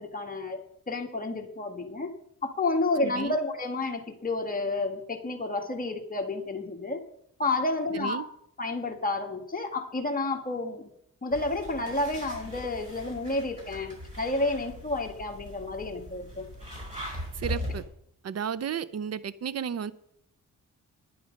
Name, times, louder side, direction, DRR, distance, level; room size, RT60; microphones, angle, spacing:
voice 1, 0.0-2.1 2.4-7.0 7.4-8.2 8.6-10.9 11.2-16.5, left 2 dB, 25° left, 2 dB, 1.8 m, -30 dB
voice 2, 3.0-3.4 7.9-8.3 17.3-17.8 18.2-19.9, right 8 dB, 50° right, 17 dB, 0.7 m, -33 dB
sound 1, 11.3-17.8, equal, 25° right, 5.4 m, -40 dB
11.0 x 10.5 x 5.3 m, 0.71 s
wide cardioid pair, 110°, 32 cm